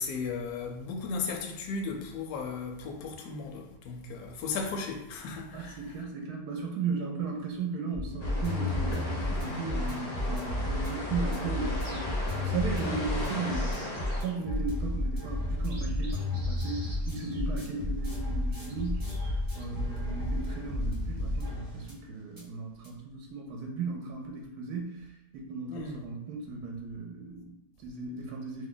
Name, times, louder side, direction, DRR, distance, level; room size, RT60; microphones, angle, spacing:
voice 1, 0.0-5.8 12.8-13.0 25.7-26.0, left 4 dB, 70° left, 2 dB, 1.0 m, -36 dB
voice 2, 5.5-13.8 14.2-28.7, right 4 dB, 75° right, 1 dB, 1.1 m, -36 dB
sound 1, 7.9-22.0 22.4-22.5 22.8-22.9, left 1 dB, 20° right, 0.6 m, -32 dB
sound 2, 8.2-14.2, left 1 dB, 55° left, 0.5 m, -38 dB
sound 3, 11.8-12.5 13.2-14.5 15.0-15.1 15.6-17.9 18.7-19.6, right 1 dB, 45° right, 0.9 m, -51 dB
2.9 x 2.1 x 3.8 m, 0.86 s
omnidirectional pair, 1.8 m